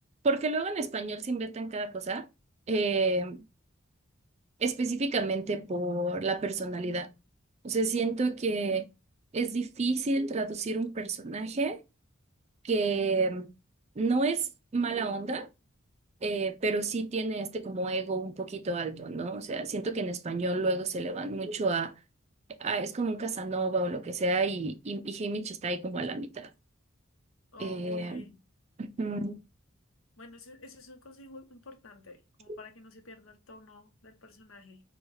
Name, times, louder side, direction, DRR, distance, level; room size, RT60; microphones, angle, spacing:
voice 1, 0.2-2.3 2.7-3.4 4.6-7.1 7.6-8.9 9.3-11.8 12.6-13.5 14.0-15.5 16.2-21.9 22.6-26.5 27.6-28.3 28.8-29.4 32.5-32.6, right 3 dB, 30° right, 0.4 m, -30 dB
voice 2, 27.5-28.4 29.0-29.2 30.2-34.8, left 2 dB, 75° left, 0.9 m, -51 dB
4.6 x 2.3 x 2.7 m
head